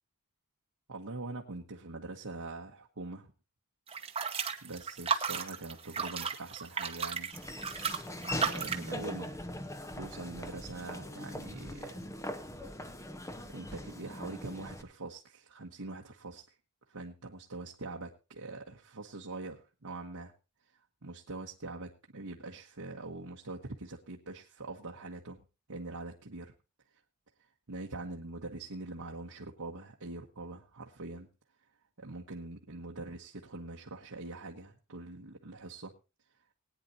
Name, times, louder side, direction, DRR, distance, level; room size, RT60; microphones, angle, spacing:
voice 1, 0.9-3.3 4.6-7.3 8.3-9.3 10.0-12.2 13.5-16.4 16.9-20.3 21.0-25.4 25.7-26.5 27.7-31.3 32.0-35.9, right 2 dB, 70° right, -1 dB, 1.2 m, -43 dB
sound 1, 3.9-8.9, right 6 dB, 25° right, 1.0 m, -34 dB
Laughter / Walk footsteps, 7.3-14.8, left 1 dB, 15° left, 0.8 m, -41 dB
20.0 x 9.5 x 2.7 m, 0.30 s
head